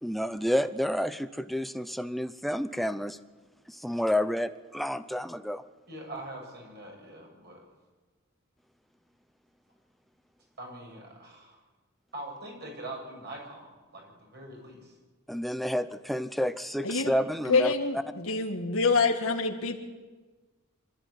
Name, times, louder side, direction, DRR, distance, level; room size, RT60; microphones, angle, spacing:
voice 1, 0.0-3.2 3.7-5.6 15.3-17.7, equal, ahead, 11 dB, 0.7 m, -30 dB
voice 2, 5.9-7.6 10.6-11.6 12.1-14.9, right 1 dB, 55° right, 0 dB, 7.1 m, -43 dB
voice 3, 17.5-18.0 18.2-19.8, left 4 dB, 85° left, 2 dB, 2.0 m, -25 dB
26.0 x 13.0 x 9.7 m, 1.3 s
head